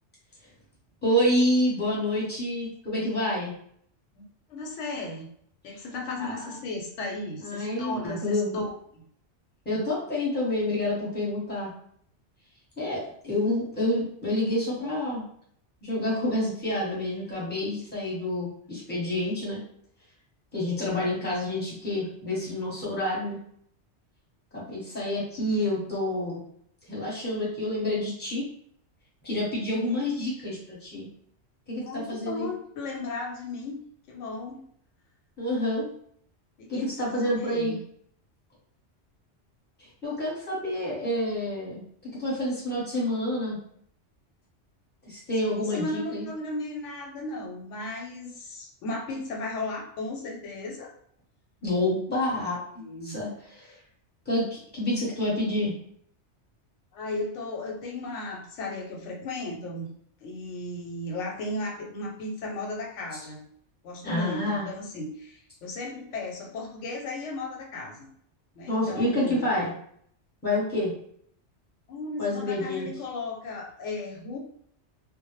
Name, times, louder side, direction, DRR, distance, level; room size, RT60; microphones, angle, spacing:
voice 1, 1.0-3.5 6.2-6.4 7.4-8.6 9.6-11.7 12.8-15.2 15.8-19.6 20.5-23.4 24.5-26.4 26.9-28.4 29.2-31.1 31.7-32.5 35.4-35.9 36.7-37.7 40.0-41.8 42.2-43.6 45.1-46.3 51.6-53.7 54.3-55.7 64.0-64.7 68.7-69.7 70.4-70.9 72.2-72.9, left 1 dB, 10° left, -6 dB, 0.8 m, -28 dB
voice 2, 4.5-5.3 5.6-9.0 31.8-33.8 34.1-34.6 36.6-37.8 45.6-50.9 52.8-53.2 56.9-59.9 60.2-63.4 63.8-68.1 68.5-69.5 71.9-74.4, left 2 dB, 85° left, 0 dB, 0.9 m, -35 dB
2.1 x 2.0 x 3.0 m, 0.64 s
omnidirectional pair, 1.2 m